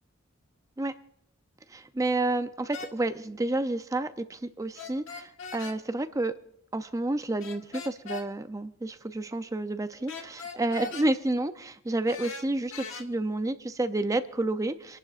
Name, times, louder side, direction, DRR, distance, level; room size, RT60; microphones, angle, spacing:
voice 1, 1.7-6.3 6.7-15.0, right 2 dB, 15° right, 10 dB, 0.5 m, -30 dB
sound 1, 2.7-2.9 4.8-5.8 7.4-8.3 10.1-11.1 12.1-13.0, left 4 dB, 70° left, 1.5 m, -39 dB
28.5 x 11.5 x 2.4 m, 0.72 s
head